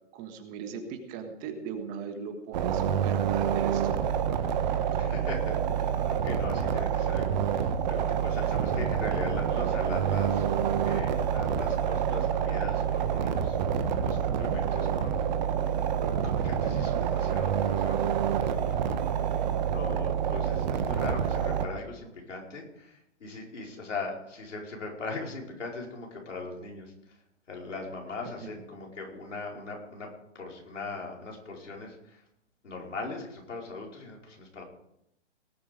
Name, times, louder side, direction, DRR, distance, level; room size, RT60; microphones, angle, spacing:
voice 1, 0.1-4.1 28.4-28.5, right 6 dB, 20° right, 6 dB, 1.4 m, -39 dB
sound 1, 2.5-21.7, right 8 dB, 40° right, 1.2 m, -27 dB
voice 2, 5.0-15.3 16.2-27.2 27.5-32.2 32.6-34.6, left 3 dB, 85° left, -1 dB, 4.9 m, -40 dB
18.5 x 8.5 x 5.1 m, 0.79 s
hypercardioid pair, 145°, 36 cm